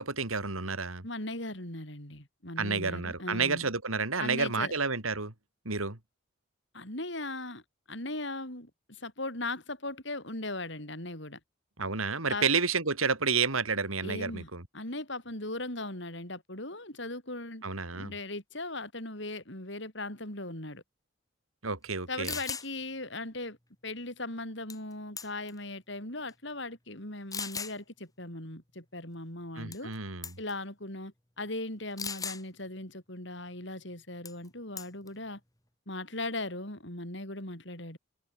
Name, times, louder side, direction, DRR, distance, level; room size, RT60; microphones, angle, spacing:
voice 1, 0.0-1.0 2.6-5.3 5.7-6.0 11.8-14.6 17.6-18.1 21.6-22.3 29.6-30.3, right 4 dB, 90° right, 3.7 m, -30 dB
voice 2, 1.0-3.7 4.2-4.7 6.7-7.6 7.9-11.4 12.3-12.5 14.0-17.6 17.9-20.8 22.1-23.6 23.8-29.9 30.4-35.4 35.9-38.0, left 2 dB, 60° left, 7.6 m, -38 dB
sound 1, 21.9-22.0 22.2-22.7 24.7-24.9 25.2-25.6 26.3-26.4 27.3-27.8 29.7-30.0 30.2-30.5 32.0-32.4 34.3-34.5 34.8-35.1, left 6 dB, 15° left, 3.0 m, -37 dB
head